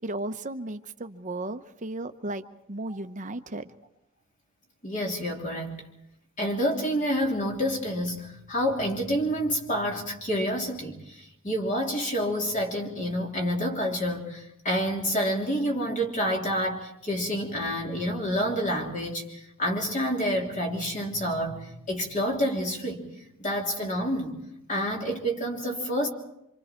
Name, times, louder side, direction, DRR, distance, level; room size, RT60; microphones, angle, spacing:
voice 1, 0.0-3.8, right 2 dB, 35° right, 9 dB, 0.8 m, -35 dB
voice 2, 4.8-5.8 6.4-23.1 23.4-24.4 24.7-26.1, equal, 35° left, 0 dB, 3.1 m, -28 dB
26.0 x 25.0 x 4.5 m, 0.82 s
head